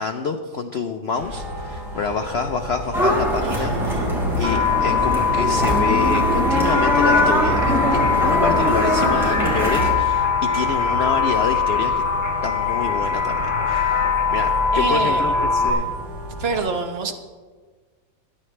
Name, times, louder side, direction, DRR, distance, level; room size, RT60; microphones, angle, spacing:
voice 1, 0.0-4.0 4.4-12.0 12.4-15.9, left 5 dB, 85° left, 6 dB, 0.5 m, -27 dB
sound 1, 1.1-16.6, equal, 65° right, 5.7 m, -33 dB
sound 2, 2.9-9.9, equal, ahead, 4.5 m, -22 dB
voice 2, 3.4-4.1 14.7-15.3 16.4-17.1, right 4 dB, 40° right, 5 dB, 1.1 m, -27 dB
sound 3, 4.4-15.7, left 5 dB, 15° left, 1.4 m, -22 dB
22.0 x 10.5 x 3.3 m, 1.5 s
omnidirectional pair, 2.0 m